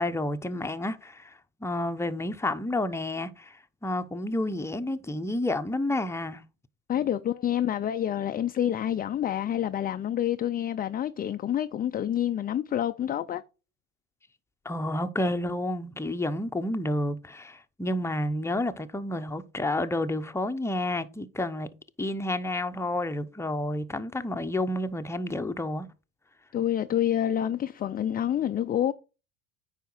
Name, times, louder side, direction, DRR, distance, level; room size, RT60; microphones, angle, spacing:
voice 1, 0.0-6.4 14.6-21.7 22.0-25.9, left 1 dB, 5° left, 0.8 m, -30 dB
voice 2, 6.9-13.4 26.5-28.9, left 10 dB, 25° left, 0.4 m, -28 dB
9.2 x 4.9 x 4.5 m
hypercardioid pair, 80°, 40 cm